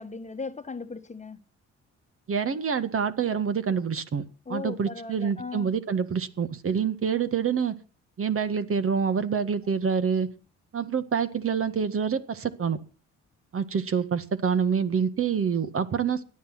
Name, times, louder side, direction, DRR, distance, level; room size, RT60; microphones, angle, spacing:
voice 1, 0.0-1.4 4.5-5.7, left 4 dB, 25° left, 1.3 m, -37 dB
voice 2, 2.3-4.2 4.5-7.7 8.2-10.3 10.7-12.8 13.5-16.2, right 6 dB, 45° right, 1.8 m, -26 dB
17.5 x 11.0 x 6.0 m
cardioid pair, 90°, 30 cm